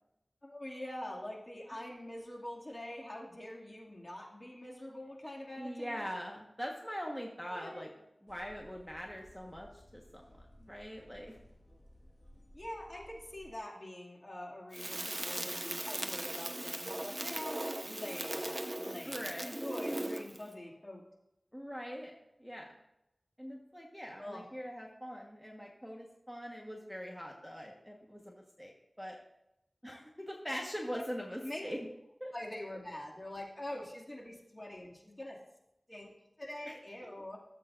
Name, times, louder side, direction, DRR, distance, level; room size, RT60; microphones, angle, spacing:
voice 1, 0.4-6.1 7.5-7.9 12.5-21.0 24.2-24.4 30.9-31.0 31.4-31.7 32.3-35.4 35.9-36.1 36.4-37.4, left 1 dB, 35° left, -2 dB, 2.3 m, -44 dB
voice 2, 5.6-7.9 8.2-11.3 19.0-19.5 21.5-22.1 22.4-22.7 23.4-28.7 29.0-29.2 29.8-31.8 32.2-32.3 36.6-36.8, equal, 5° left, 0 dB, 1.4 m, -42 dB
sound 1, 8.3-13.6, equal, 55° left, 1.5 m, -59 dB
Crackle, 14.7-20.4, right 1 dB, 35° right, 0.9 m, -38 dB
16.5 x 7.5 x 2.6 m, 0.85 s
wide cardioid pair, 40°, 0 cm